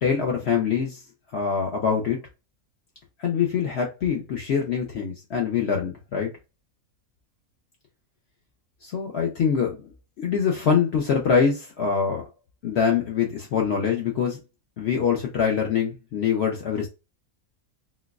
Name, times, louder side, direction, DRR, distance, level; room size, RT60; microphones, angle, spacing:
voice 1, 0.0-1.0 1.3-2.2 3.2-6.3 8.8-12.2 12.6-14.4 14.8-16.9, left 6 dB, 60° left, 0.7 m, -24 dB
3.9 x 2.2 x 2.3 m
omnidirectional pair, 1.5 m